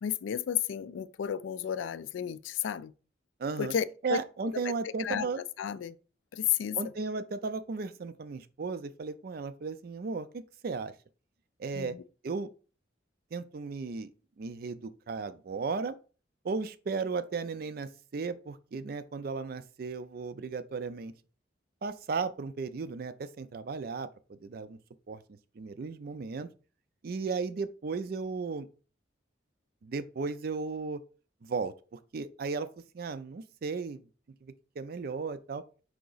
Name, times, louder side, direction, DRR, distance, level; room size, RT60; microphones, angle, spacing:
voice 1, 0.0-2.9 3.6-3.8 4.1-4.2 4.5-4.6 5.0-5.3 5.6-6.0 6.3-6.8 11.7-12.0, left 9 dB, 85° left, 0.3 m, -32 dB
voice 2, 3.4-3.7 4.0-5.4 6.7-10.9 11.6-12.0 12.2-12.5 13.3-14.1 14.4-16.0 16.4-21.1 21.8-24.1 24.4-24.8 25.1-25.2 25.6-26.5 27.0-28.7 29.8-31.0 31.4-32.7 32.9-34.0 34.4-35.6, right 4 dB, 50° right, 0.4 m, -35 dB
4.8 x 2.8 x 3.9 m
head